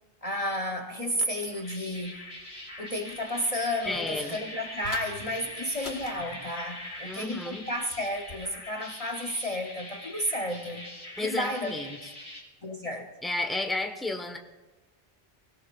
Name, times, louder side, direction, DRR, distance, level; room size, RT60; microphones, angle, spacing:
voice 1, 0.2-2.2 2.8-10.9 11.2-11.7 12.6-13.1, left 1 dB, 35° left, 1.0 m, -32 dB
sound 1, 1.4-12.4, left 1 dB, 55° left, 4.0 m, -43 dB
sound 2, 1.9-8.4, left 3 dB, 80° left, 1.6 m, -50 dB
sound 3, 2.5-2.6 3.1-3.2 3.6-4.4 4.8-7.0 7.3-7.4, right 2 dB, 85° right, 1.6 m, -49 dB
voice 2, 3.9-4.4 7.0-7.6 11.2-12.0 13.2-14.4, left 2 dB, ahead, 1.1 m, -32 dB
23.0 x 16.5 x 2.5 m
omnidirectional pair, 1.0 m